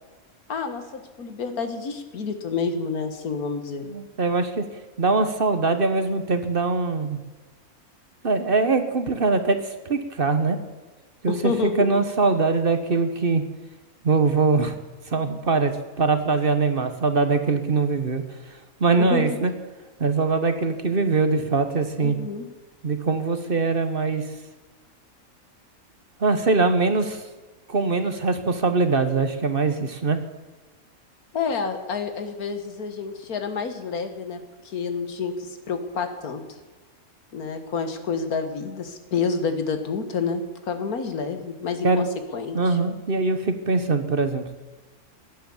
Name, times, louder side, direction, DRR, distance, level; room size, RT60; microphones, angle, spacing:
voice 1, 0.5-3.9 11.3-11.9 19.0-19.4 22.0-22.5 31.3-34.4 34.6-36.4 37.3-42.1 42.3-42.8, left 5 dB, 90° left, 8 dB, 2.0 m, -29 dB
voice 2, 3.8-4.6 5.0-7.2 8.2-10.6 11.2-13.4 14.0-14.8 15.1-18.2 18.8-19.5 20.0-22.2 22.8-24.2 26.2-27.2 27.7-30.2 41.8-42.0 42.5-44.5, right 3 dB, 40° right, 9 dB, 1.2 m, -22 dB
15.5 x 10.5 x 7.1 m, 1.3 s
omnidirectional pair, 1.5 m